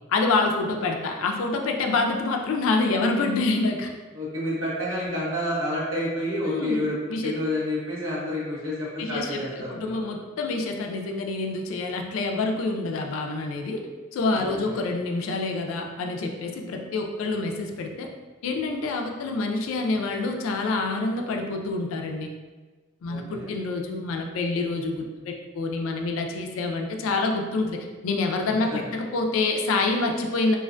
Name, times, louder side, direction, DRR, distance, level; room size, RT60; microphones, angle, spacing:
voice 1, 0.1-3.9 6.4-6.8 7.1-7.3 9.0-13.9 14.1-18.1 18.4-22.3 23.0-30.6, left 3 dB, 85° left, 3 dB, 0.3 m, -27 dB
voice 2, 4.1-9.9 14.4-14.9 23.1-23.5 28.7-28.8, left 1 dB, 70° right, -6 dB, 0.9 m, -29 dB
2.4 x 2.1 x 2.4 m, 1.3 s
head